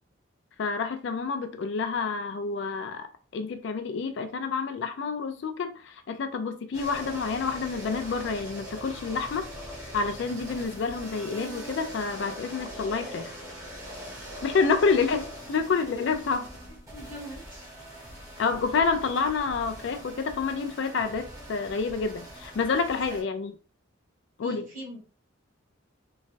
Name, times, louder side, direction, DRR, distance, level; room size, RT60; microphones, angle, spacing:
voice 1, 0.6-3.1 3.3-9.5 9.9-13.3 14.4-16.5 18.4-23.5 24.4-24.7, left 4 dB, 60° left, 0.3 m, -28 dB
sound 1, 6.7-23.2, equal, 15° right, 0.9 m, -42 dB
voice 2, 16.9-17.7 23.1-23.2 24.4-25.0, right 1 dB, 40° right, 1.4 m, -42 dB
3.1 x 2.2 x 2.5 m
head